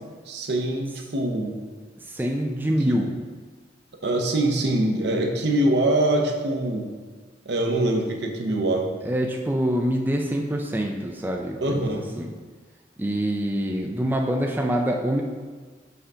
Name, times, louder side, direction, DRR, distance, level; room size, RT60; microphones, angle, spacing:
voice 1, 0.3-1.6 2.9-3.0 4.0-6.9 7.5-8.9 11.6-12.1, right 1 dB, 65° right, 2 dB, 0.8 m, -24 dB
voice 2, 2.1-3.1 9.0-11.8 12.2-12.3 13.0-15.2, equal, 10° right, 1 dB, 0.4 m, -25 dB
5.7 x 3.8 x 5.5 m, 1.4 s
head